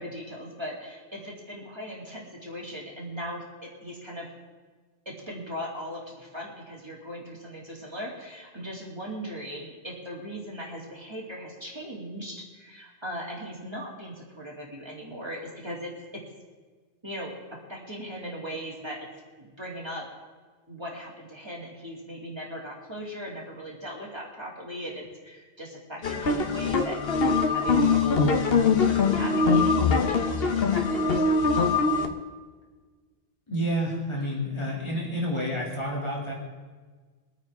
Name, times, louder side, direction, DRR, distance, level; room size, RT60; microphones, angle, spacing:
voice 1, 0.0-4.3 5.1-16.2 17.0-19.1 19.4-20.1 20.7-28.3 28.8-31.2 31.5-32.0, equal, 25° right, -4 dB, 2.5 m, -39 dB
sound 1, 26.0-32.1, left 4 dB, 60° left, 1.1 m, -23 dB
voice 2, 33.5-36.3, equal, 25° left, -4 dB, 2.6 m, -29 dB
23.5 x 9.1 x 3.6 m, 1.4 s
omnidirectional pair, 1.2 m